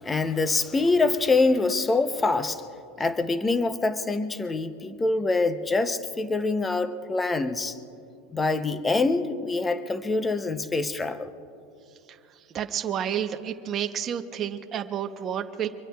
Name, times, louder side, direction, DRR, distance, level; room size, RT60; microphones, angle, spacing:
voice 1, 0.0-2.6 3.0-7.8 8.3-11.3, left 3 dB, 10° left, 11 dB, 0.6 m, -25 dB
voice 2, 12.5-15.7, right 9 dB, 25° right, 7 dB, 0.7 m, -30 dB
25.0 x 22.0 x 2.3 m, 2.6 s
supercardioid pair, 170°, 0 cm